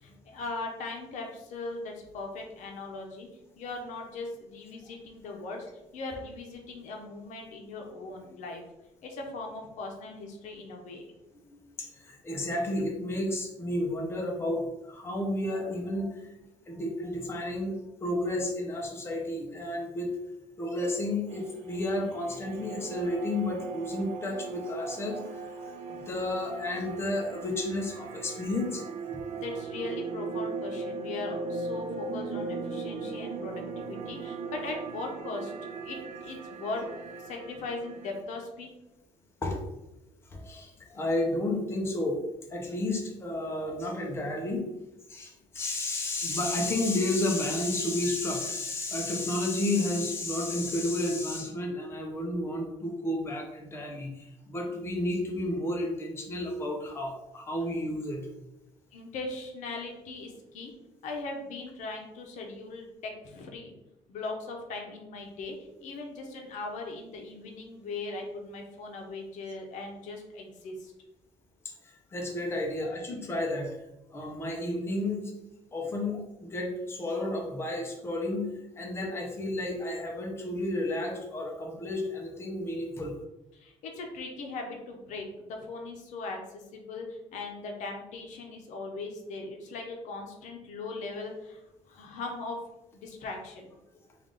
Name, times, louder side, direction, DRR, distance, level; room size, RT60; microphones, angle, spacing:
voice 1, 0.0-3.3 3.6-5.7 5.9-8.6 9.0-11.0 29.2-35.5 35.8-36.8 37.2-38.7 58.9-60.7 61.0-63.7 64.1-70.9 83.5-91.6 91.9-92.6 92.9-93.7, left 3 dB, 70° left, 2 dB, 0.7 m, -39 dB
voice 2, 11.5-16.3 16.7-20.1 20.6-28.8 39.4-39.6 40.3-42.2 42.5-44.7 45.1-58.3 71.6-73.8 74.1-75.3 75.7-83.2, left 1 dB, 20° left, 0 dB, 0.6 m, -32 dB
sound 1, 21.3-38.2, right 4 dB, 60° right, 0.4 m, -38 dB
3.4 x 2.4 x 3.7 m, 0.94 s
cardioid pair, 150°, 13 cm